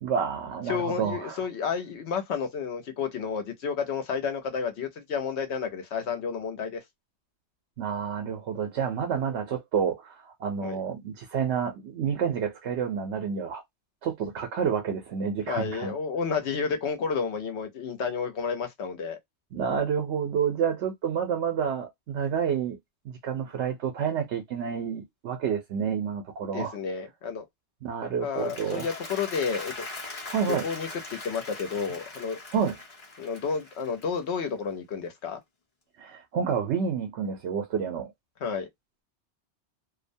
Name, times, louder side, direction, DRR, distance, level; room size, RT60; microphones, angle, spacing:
voice 1, 0.0-1.4 7.8-13.6 14.0-15.9 19.5-22.8 23.0-26.7 27.8-28.9 30.3-30.7 32.5-32.8 36.0-38.1, right 7 dB, 85° right, 1.0 m, -29 dB
voice 2, 0.7-6.8 10.6-10.8 15.5-19.2 26.5-27.4 28.2-29.8 30.5-32.4 33.2-35.4 38.4-38.7, left 6 dB, 75° left, 1.0 m, -31 dB
Applause, 28.2-34.6, left 3 dB, 35° left, 0.9 m, -41 dB
2.6 x 2.1 x 2.6 m
omnidirectional pair, 1.1 m